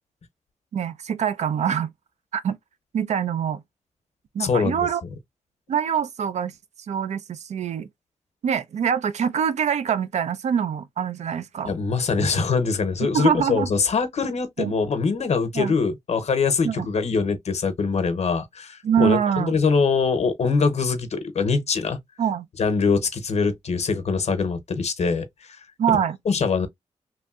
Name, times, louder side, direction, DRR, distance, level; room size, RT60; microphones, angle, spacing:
voice 1, 0.7-1.9 2.3-2.6 2.9-3.6 4.3-5.0 5.7-6.5 6.9-7.9 8.4-11.7 13.1-13.7 14.6-14.7 15.5-15.7 16.6-16.9 18.8-19.6 22.2-22.4 25.8-26.2, right 8 dB, 70° right, 0.4 m, -24 dB
voice 2, 4.4-4.8 11.6-22.0 22.6-25.6 25.9-26.0 26.3-26.7, left 5 dB, 65° left, 0.8 m, -23 dB
3.1 x 2.6 x 2.3 m
cardioid pair, 60°, 12 cm